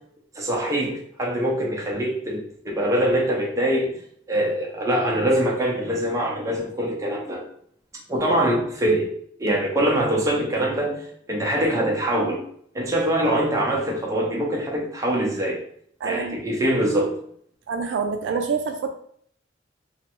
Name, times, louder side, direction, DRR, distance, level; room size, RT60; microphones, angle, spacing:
voice 1, 0.4-3.9 4.3-7.4 8.1-9.1 9.4-12.4 12.7-15.6 16.1-17.1, right 1 dB, 15° right, -2 dB, 0.6 m, -23 dB
voice 2, 16.0-16.4 17.7-18.9, right 5 dB, 75° right, 5 dB, 0.3 m, -26 dB
3.1 x 2.1 x 2.9 m, 0.64 s
head